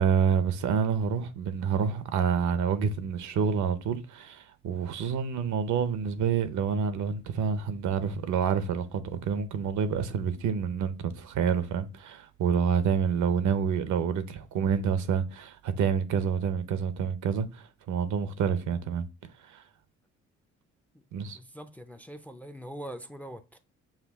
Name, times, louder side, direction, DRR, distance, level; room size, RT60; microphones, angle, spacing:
voice 1, 0.0-19.1 19.5-19.6 21.1-21.4, right 7 dB, 75° right, 0.7 m, -28 dB
voice 2, 21.3-23.6, right 1 dB, 5° left, 0.4 m, -42 dB
5.8 x 2.3 x 3.4 m
cardioid pair, 90°, 30 cm